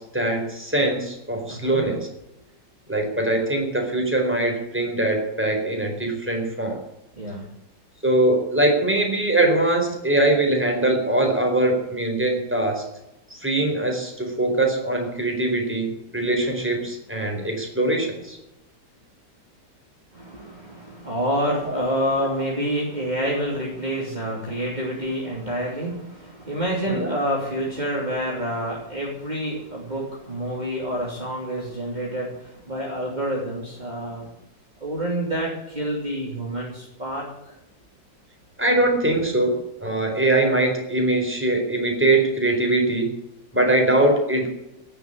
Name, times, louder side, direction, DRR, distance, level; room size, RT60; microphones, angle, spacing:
voice 1, 0.0-2.1 2.9-6.8 8.0-12.8 13.3-15.9 16.1-18.4 21.7-21.8 26.9-27.1 38.6-39.6 39.8-43.1 43.5-44.5, right 2 dB, 5° right, 2 dB, 4.2 m, -22 dB
voice 2, 1.5-1.9 7.2-7.5 20.1-34.3 34.8-37.6, equal, 25° right, -4 dB, 3.2 m, -28 dB
17.5 x 7.0 x 9.8 m, 0.88 s
omnidirectional pair, 1.9 m